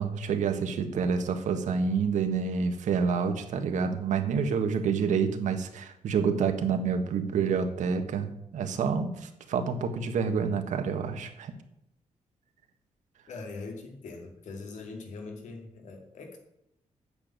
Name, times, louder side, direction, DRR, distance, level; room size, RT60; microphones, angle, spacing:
voice 1, 0.0-11.5, right 6 dB, 85° right, 7 dB, 1.5 m, -28 dB
voice 2, 13.3-16.4, left 3 dB, 80° left, 3 dB, 2.6 m, -42 dB
8.9 x 7.0 x 8.8 m, 0.81 s
wide cardioid pair, 150°, 12 cm